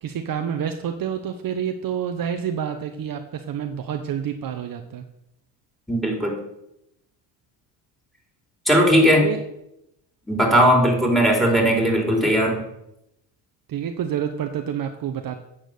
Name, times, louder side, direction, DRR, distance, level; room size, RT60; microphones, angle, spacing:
voice 1, 0.0-5.0 9.1-9.4 13.7-15.4, right 8 dB, 45° right, 6 dB, 1.1 m, -28 dB
voice 2, 5.9-6.4 8.7-9.3 10.3-12.6, equal, ahead, 0 dB, 4.2 m, -18 dB
8.9 x 7.5 x 6.8 m, 0.84 s
supercardioid pair, 80°, 46 cm